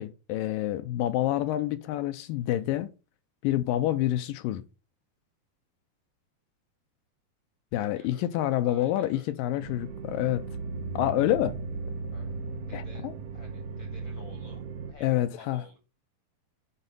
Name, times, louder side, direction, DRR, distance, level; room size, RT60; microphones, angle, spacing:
voice 1, 0.0-2.9 3.4-4.6 7.7-10.4 11.0-11.6 12.7-13.1 15.0-15.6, left 13 dB, 80° left, 2.3 m, -27 dB
voice 2, 7.7-8.3 8.6-9.3 12.1-13.1 13.3-14.6 14.9-15.8, left 3 dB, 50° left, 1.5 m, -53 dB
sound 1, 9.6-14.9, right 4 dB, 65° right, 2.3 m, -36 dB
9.9 x 5.1 x 5.3 m
omnidirectional pair, 4.2 m